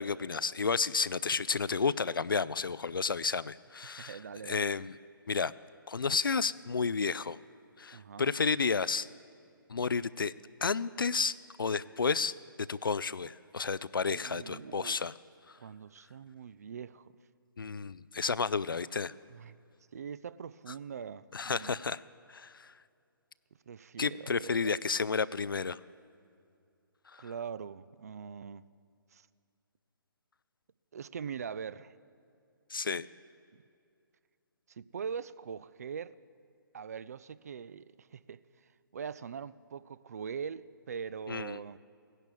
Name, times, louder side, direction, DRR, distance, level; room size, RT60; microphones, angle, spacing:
voice 1, 0.0-4.2 4.4-4.9 5.3-5.5 5.9-7.4 7.8-9.1 9.7-10.3 10.6-12.3 12.7-15.1 17.6-19.1 21.3-22.0 22.3-22.7 24.0-25.8 27.1-27.3 32.7-33.1 41.3-41.6, left 5 dB, 70° left, 0.4 m, -31 dB
voice 2, 3.8-4.7 7.9-8.3 14.0-15.0 15.6-17.1 19.3-19.6 19.9-21.8 23.7-24.8 27.2-28.7 29.1-29.3 30.9-31.9 34.7-36.1 36.7-38.4 38.9-41.8, right 7 dB, 45° right, 0.4 m, -42 dB
16.5 x 11.0 x 7.2 m
figure-of-eight pair, 135°, 12 cm